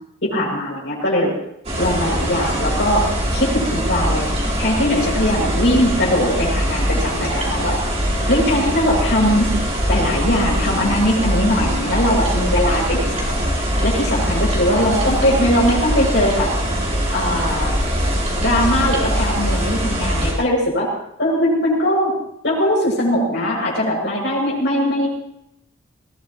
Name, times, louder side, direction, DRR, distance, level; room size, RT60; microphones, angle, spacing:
voice 1, 0.2-1.3 1.8-3.0 3.3-4.3 4.6-7.8 8.3-9.5 9.9-13.4 13.8-16.5 17.1-17.7 18.4-20.9 21.2-22.1 22.4-25.1, left 1 dB, 55° left, -2 dB, 7.6 m, -20 dB
sound 1, 1.6-20.3, equal, 35° right, 4.4 m, -22 dB
21.5 x 18.0 x 3.2 m, 0.76 s
head